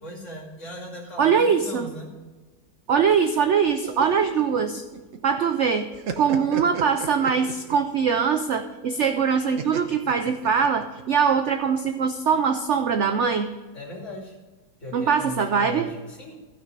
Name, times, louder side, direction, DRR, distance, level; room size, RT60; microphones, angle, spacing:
voice 1, 0.0-2.1 13.7-14.3 14.8-16.3, left 1 dB, 40° left, -1 dB, 2.9 m, -38 dB
voice 2, 1.2-1.9 2.9-4.8 5.2-5.9 6.2-13.5 14.9-15.9, right 6 dB, 75° right, 7 dB, 0.6 m, -22 dB
sound 1, 3.7-5.4 5.7-7.9 9.6-11.0, right 7 dB, 55° right, 1.1 m, -34 dB
15.0 x 6.3 x 5.3 m, 1.3 s
omnidirectional pair, 2.0 m